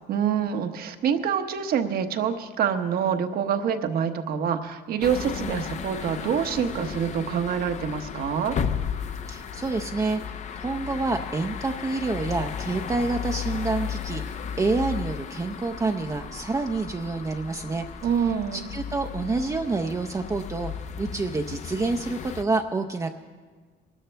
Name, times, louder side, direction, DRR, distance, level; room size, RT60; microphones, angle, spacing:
voice 1, 0.1-8.6 18.0-18.7, right 7 dB, 65° right, 7 dB, 1.0 m, -26 dB
sound 1, 5.0-22.4, left 8 dB, 45° left, 0.6 m, -34 dB
voice 2, 9.3-10.2 10.6-17.9 18.5-23.1, right 3 dB, 20° right, 4 dB, 0.5 m, -28 dB
22.5 x 12.5 x 3.4 m, 1.4 s
cardioid pair, 110°, 17 cm